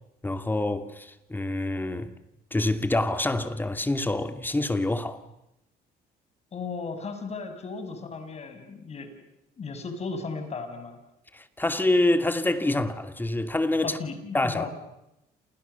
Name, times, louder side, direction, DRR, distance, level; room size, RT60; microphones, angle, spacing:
voice 1, 0.2-2.1 2.5-5.2 11.3-14.0 14.3-14.7, left 2 dB, 10° left, 2.4 m, -26 dB
voice 2, 6.5-9.1 9.6-11.0 13.8-14.7, left 4 dB, 40° left, 6.5 m, -35 dB
29.0 x 29.0 x 7.0 m
cardioid pair, 110°, 17 cm